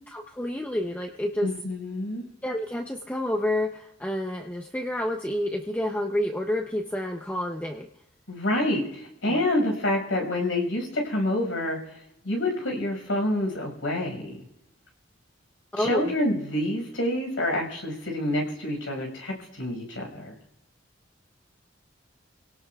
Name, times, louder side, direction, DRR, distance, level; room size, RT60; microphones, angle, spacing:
voice 1, 0.1-1.5 2.4-7.9 9.2-9.5 15.7-16.1, left 1 dB, 10° left, 2 dB, 0.6 m, -29 dB
voice 2, 1.4-2.2 8.3-11.8 12.2-14.4 15.8-20.3, left 1 dB, 80° left, 1 dB, 5.6 m, -27 dB
28.5 x 18.0 x 2.4 m, 0.84 s
head